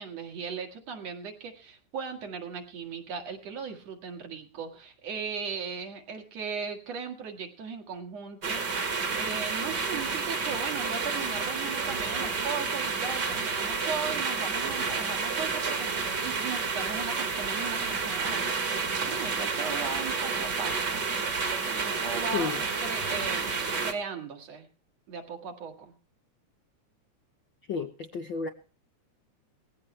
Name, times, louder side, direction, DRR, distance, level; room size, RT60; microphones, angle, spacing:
voice 1, 0.0-21.0 21.7-23.5 23.8-24.7 25.1-25.9, right 5 dB, 60° right, 4 dB, 3.0 m, -37 dB
sound 1, 8.4-23.9, right 4 dB, 40° right, 2.1 m, -30 dB
voice 2, 27.7-28.5, left 5 dB, 65° left, 6 dB, 1.2 m, -32 dB
19.0 x 15.5 x 3.3 m, 0.35 s
omnidirectional pair, 3.4 m